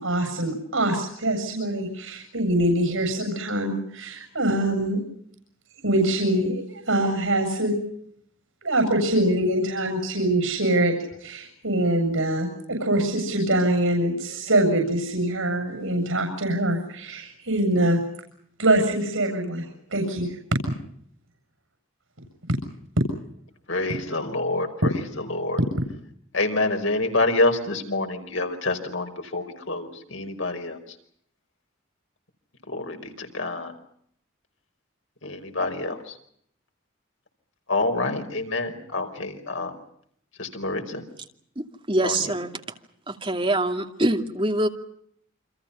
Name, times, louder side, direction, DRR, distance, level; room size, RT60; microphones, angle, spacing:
voice 1, 0.0-5.0 5.8-7.7 8.6-10.9 11.2-18.0 18.6-20.3, right 1 dB, 85° right, 3 dB, 7.4 m, -24 dB
voice 2, 23.7-25.6 26.3-31.0 32.7-33.7 35.2-36.2 37.7-39.7 40.4-41.0 42.0-42.3, left 2 dB, 75° left, 5 dB, 5.2 m, -27 dB
voice 3, 41.6-42.5 43.1-44.7, right 1 dB, 25° right, 4 dB, 2.5 m, -24 dB
29.0 x 26.0 x 5.7 m, 0.67 s
head